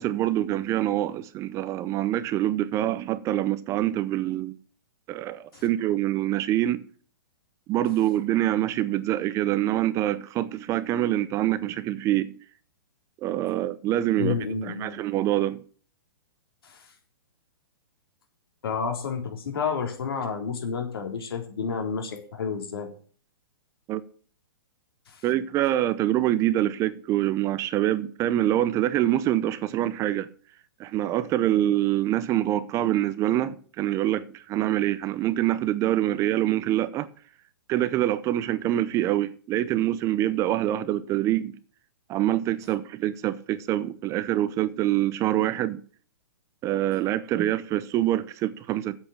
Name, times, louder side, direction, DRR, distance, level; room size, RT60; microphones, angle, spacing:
voice 1, 0.0-4.6 5.1-6.8 7.7-12.3 13.2-15.6 23.9-24.0 25.2-30.3 30.8-37.1 37.7-41.6 42.1-45.8 46.6-49.0, right 13 dB, 25° right, 0.7 m, -25 dB
voice 2, 14.2-14.9 16.6-16.9 18.6-22.9 25.1-25.2, left 6 dB, 75° left, 4.0 m, -30 dB
8.3 x 8.0 x 8.8 m
hypercardioid pair, 140°, 13 cm